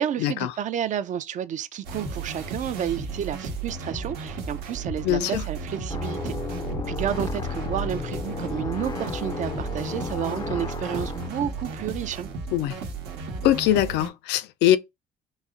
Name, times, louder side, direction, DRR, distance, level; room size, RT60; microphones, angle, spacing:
voice 1, 0.0-6.4 6.9-12.3, right 9 dB, 45° right, 0.4 m, -31 dB
sound 1, 1.8-14.1, right 4 dB, 90° right, 1.0 m, -34 dB
voice 2, 5.0-5.4 12.5-12.8 13.4-14.8, left 13 dB, 85° left, 0.4 m, -22 dB
sound 2, 5.9-11.3, left 4 dB, 25° left, 0.4 m, -33 dB
4.0 x 2.1 x 3.6 m
cardioid pair, 110°, 17 cm